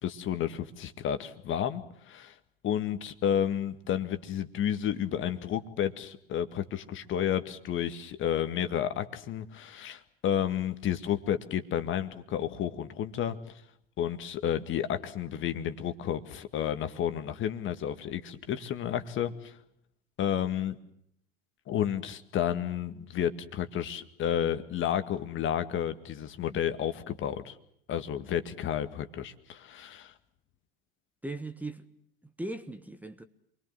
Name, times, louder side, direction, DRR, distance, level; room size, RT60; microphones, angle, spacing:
voice 1, 0.0-2.3 2.6-13.6 14.0-19.5 20.2-20.8 21.7-27.6 27.9-30.1, left 10 dB, 40° left, 2.0 m, -31 dB
voice 2, 31.2-31.8 32.2-33.2, right 2 dB, 5° right, 1.4 m, -38 dB
27.5 x 22.0 x 7.6 m
figure-of-eight pair, 80°, 31 cm